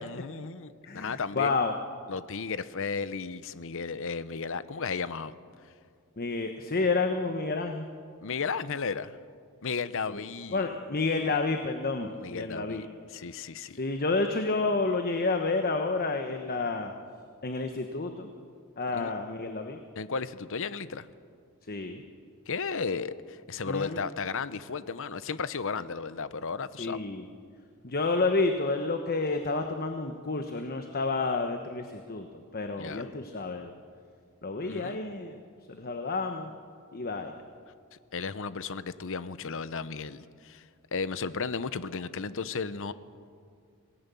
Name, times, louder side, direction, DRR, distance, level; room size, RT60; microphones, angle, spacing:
voice 1, 0.0-1.6 2.1-5.3 8.2-9.2 9.6-10.6 11.2-11.4 12.2-13.8 18.9-19.1 20.0-21.1 22.5-27.0 32.8-33.1 34.7-35.0 38.1-40.6 40.9-42.9, left 5 dB, 65° left, 14 dB, 0.8 m, -34 dB
voice 2, 0.9-1.7 6.2-7.9 10.1-10.2 10.5-12.8 13.7-16.9 17.4-18.3 18.8-19.8 21.7-22.0 23.7-24.0 26.8-27.2 27.8-32.3 32.5-33.7 34.4-35.3 35.7-36.5 36.9-37.3, left 3 dB, 45° left, 5 dB, 1.1 m, -30 dB
27.0 x 18.5 x 7.0 m, 2.2 s
head